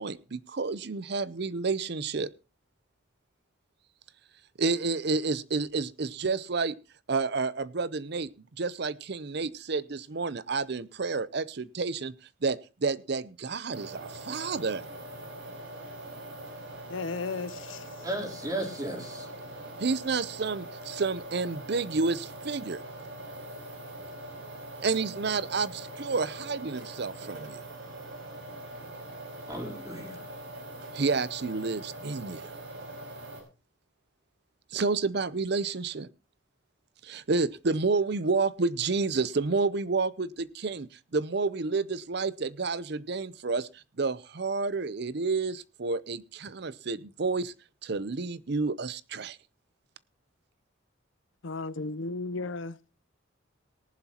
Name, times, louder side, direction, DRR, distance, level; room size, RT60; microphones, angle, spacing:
voice 1, 0.0-2.3 4.6-6.8 7.1-8.3 8.6-12.1 12.4-14.8 19.8-22.8 24.8-27.6 30.9-32.5 34.7-36.1 37.0-47.5 47.8-49.4, right 4 dB, 55° right, 0.6 m, -30 dB
sound 1, 13.7-33.4, right 1 dB, 70° right, 5.1 m, -42 dB
voice 2, 16.9-18.0 51.4-52.8, left 3 dB, 70° left, 0.7 m, -35 dB
voice 3, 18.0-19.3 29.5-30.2, right 1 dB, 20° right, 3.5 m, -35 dB
18.5 x 11.0 x 2.9 m
head